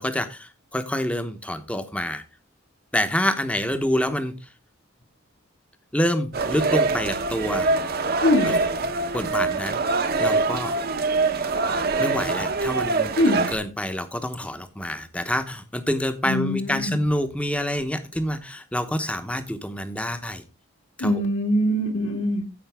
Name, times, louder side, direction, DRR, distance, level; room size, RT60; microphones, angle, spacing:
voice 1, 0.0-2.2 2.9-4.5 5.9-7.7 8.4-8.6 9.1-10.7 12.0-20.4 21.0-21.2, left 1 dB, 5° left, 8 dB, 0.9 m, -27 dB
sound 1, 6.3-13.6, right 3 dB, 45° right, 0.9 m, -24 dB
voice 2, 8.2-8.6 13.2-13.5 16.3-16.9 21.0-22.4, left 1 dB, 60° left, 2 dB, 1.9 m, -22 dB
15.0 x 5.2 x 3.5 m, 0.31 s
head